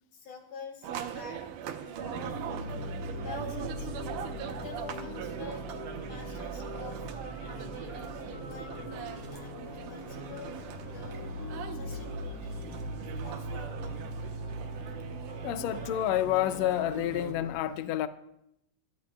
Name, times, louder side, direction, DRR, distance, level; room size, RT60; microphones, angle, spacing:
voice 1, 0.1-1.4 1.8-2.5 3.2-3.9 4.5-5.7 6.0-7.0 7.4-8.1 8.4-10.5 10.8-11.3 11.7-12.7 12.9-14.0, left 5 dB, 55° left, 3.3 m, -47 dB
sound 1, 0.8-17.3, right 9 dB, 75° right, 2.4 m, -41 dB
sound 2, 2.0-17.5, equal, 20° left, 4.4 m, -40 dB
voice 2, 15.4-18.1, left 12 dB, 90° left, 1.5 m, -29 dB
21.5 x 15.0 x 2.3 m
omnidirectional pair, 3.7 m